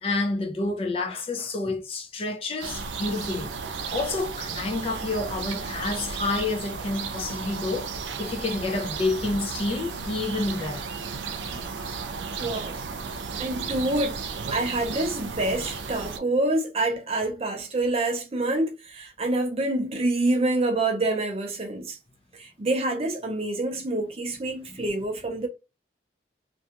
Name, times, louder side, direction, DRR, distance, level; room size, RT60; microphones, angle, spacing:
voice 1, 0.0-3.5 3.9-7.9 8.2-10.9 11.5-11.6 24.7-24.8, left 3 dB, 30° left, 0.4 m, -29 dB
sound 1, 2.6-16.2, right 5 dB, 90° right, 0.4 m, -34 dB
voice 2, 12.4-12.8 13.4-14.2 14.5-22.0 22.4-25.5, right 2 dB, 35° right, 0.5 m, -27 dB
2.5 x 2.2 x 2.8 m
head